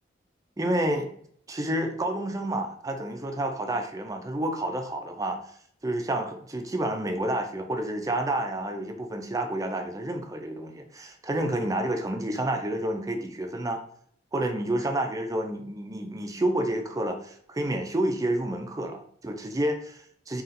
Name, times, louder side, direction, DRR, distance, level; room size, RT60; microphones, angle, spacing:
voice 1, 0.6-1.1 1.5-5.4 5.8-13.8 14.3-20.4, right 1 dB, 20° right, 4 dB, 0.5 m, -29 dB
4.1 x 2.4 x 3.7 m, 0.63 s
head